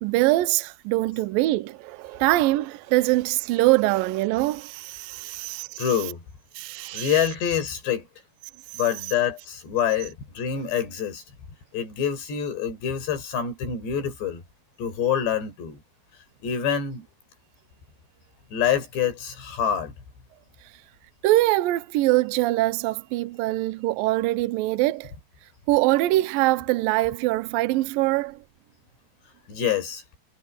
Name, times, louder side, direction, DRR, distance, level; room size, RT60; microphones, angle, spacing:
voice 1, 0.0-5.8 6.6-7.1 21.2-25.1 25.7-28.4, right 18 dB, 80° right, 2.2 m, -23 dB
voice 2, 5.8-6.2 6.9-8.1 8.7-11.2 11.7-14.4 14.8-15.8 16.4-17.1 18.5-19.9 29.5-30.0, left 8 dB, 85° left, 7.2 m, -26 dB
omnidirectional pair, 4.8 m